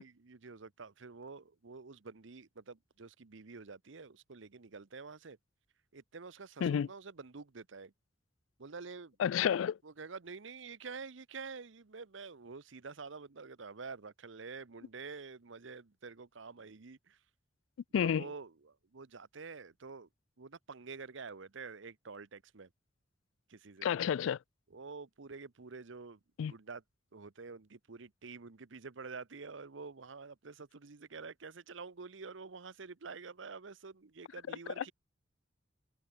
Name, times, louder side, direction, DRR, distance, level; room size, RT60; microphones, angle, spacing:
voice 1, 0.0-5.4 5.9-7.9 8.6-9.2 9.8-17.2 17.9-20.1 20.4-22.7 23.5-24.0 24.7-26.2 26.5-26.8 27.1-34.9, right 4 dB, 75° right, 0.9 m, -48 dB
voice 2, 9.2-9.8 17.9-18.2 23.8-24.4 26.4-26.5 34.8-34.9, left 8 dB, 80° left, 0.3 m, -30 dB
head